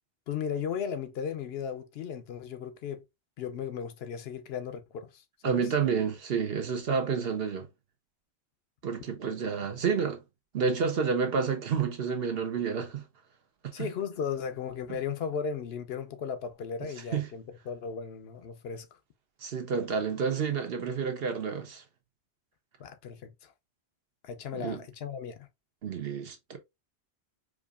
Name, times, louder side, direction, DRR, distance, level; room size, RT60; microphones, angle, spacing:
voice 1, 0.3-3.0 3.4-5.7 13.7-18.9 22.8-23.5 24.2-25.5, left 7 dB, 70° left, 0.8 m, -36 dB
voice 2, 5.4-7.7 8.8-10.2 10.5-13.0 13.8-13.9 17.1-17.3 19.4-21.8 24.5-24.8 25.8-26.6, right 6 dB, 65° right, 1.0 m, -29 dB
4.8 x 2.5 x 2.4 m
omnidirectional pair, 1.1 m